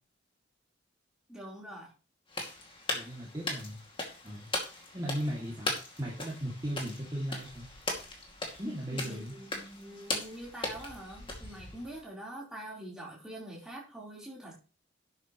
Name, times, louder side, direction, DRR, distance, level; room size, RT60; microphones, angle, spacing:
voice 1, 1.3-1.9 8.9-14.5, right 1 dB, 5° right, -4 dB, 4.1 m, -44 dB
sound 1, 2.3-12.0, left 2 dB, 25° left, 2.5 m, -39 dB
voice 2, 2.9-3.8 4.2-4.5 4.9-5.7 6.0-7.7 8.6-9.3, equal, 20° right, -5 dB, 2.6 m, -36 dB
11.5 x 9.2 x 3.2 m, 0.34 s
head